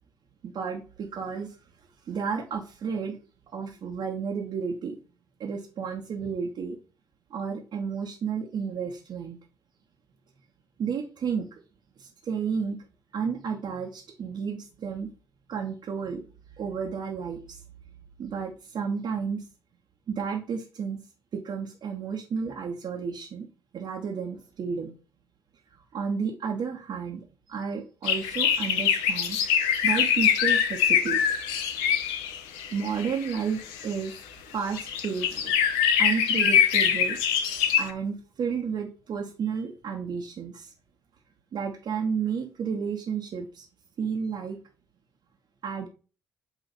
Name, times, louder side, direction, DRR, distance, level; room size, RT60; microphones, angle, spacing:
voice 1, 0.4-1.6 2.1-3.2 3.5-5.0 5.4-6.8 7.3-9.4 10.8-11.5 12.0-12.8 13.1-15.1 15.5-16.2 16.6-17.6 18.2-19.4 20.1-21.0 21.3-23.5 23.7-24.9 25.9-29.4 29.8-31.4 32.7-34.2 34.5-35.6 36.0-37.2 37.8-40.7 41.5-43.7 44.0-44.6 45.6-45.9, right 6 dB, 50° right, -1 dB, 1.3 m, -32 dB
sound 1, 28.0-33.4 33.7-34.1 34.7-37.9, left 8 dB, 70° left, 0.7 m, -24 dB
8.2 x 3.2 x 4.1 m, 0.35 s
figure-of-eight pair, 45°, 10 cm